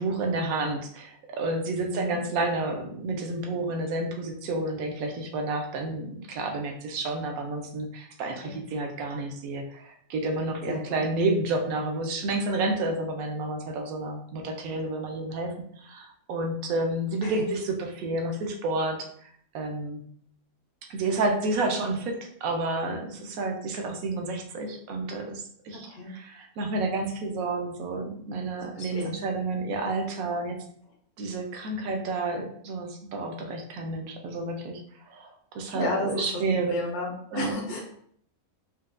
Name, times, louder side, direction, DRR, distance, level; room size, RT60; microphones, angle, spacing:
voice 1, 0.0-19.3 19.5-20.0 20.9-30.6 31.2-34.8 35.1-36.7 37.3-37.6, right 2 dB, 80° right, 3 dB, 1.1 m, -30 dB
voice 2, 1.9-2.2 8.4-8.5 10.7-11.1 17.2-17.4 25.8-26.1 28.7-29.2 35.7-36.2 36.7-37.8, left 2 dB, 85° left, 0 dB, 1.3 m, -32 dB
4.2 x 2.2 x 2.4 m, 0.64 s
omnidirectional pair, 1.5 m